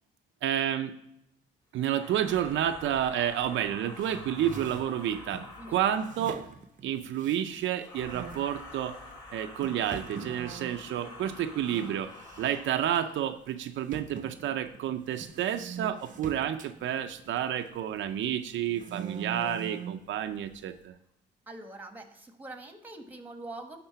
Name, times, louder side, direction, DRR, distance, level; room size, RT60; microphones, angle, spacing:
voice 1, 0.4-0.9 1.7-6.4 6.8-9.0 9.3-21.0, right 10 dB, 75° right, 7 dB, 0.5 m, -30 dB
sound 1, 1.9-6.4 7.8-13.3, left 2 dB, 20° left, 2.5 m, -47 dB
sound 2, 4.0-5.5 6.0-7.8 8.1-8.5 9.1-9.2 9.6-11.9 12.2-12.6 12.9-13.0 13.9-17.9 18.4-20.1, right 6 dB, 40° right, 0.7 m, -43 dB
voice 2, 21.5-23.8, right 2 dB, 10° right, 6 dB, 1.3 m, -44 dB
9.9 x 3.8 x 6.7 m, 0.80 s
cardioid pair, 90°, 20 cm